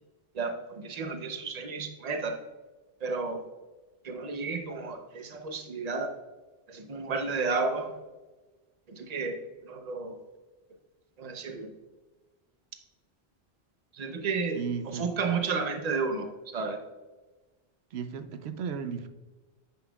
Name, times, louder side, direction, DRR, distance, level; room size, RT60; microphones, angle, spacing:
voice 1, 0.8-2.4 3.0-3.4 4.0-6.1 6.7-7.9 8.9-9.4 9.7-10.1 11.2-11.7 14.0-14.6 14.9-16.3 16.5-16.8, right 4 dB, 45° right, 6 dB, 0.8 m, -32 dB
voice 2, 14.5-15.1 17.9-19.1, right 6 dB, 85° right, 10 dB, 0.9 m, -35 dB
10.0 x 5.6 x 2.3 m, 1.2 s
omnidirectional pair, 1.0 m